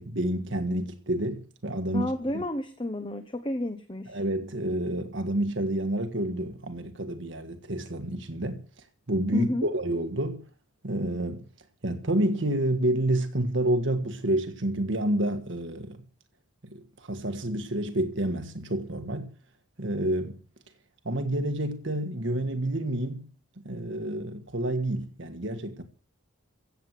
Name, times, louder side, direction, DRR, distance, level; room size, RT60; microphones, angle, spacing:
voice 1, 0.0-2.4 4.1-8.6 9.1-10.4 10.8-11.4 11.8-16.0 16.6-19.3 19.8-20.3 21.1-23.3 23.7-25.8, right 1 dB, 60° right, 1.6 m, -29 dB
voice 2, 1.9-4.2 9.3-9.7, left 1 dB, 25° left, 1.0 m, -31 dB
16.0 x 8.0 x 7.7 m
head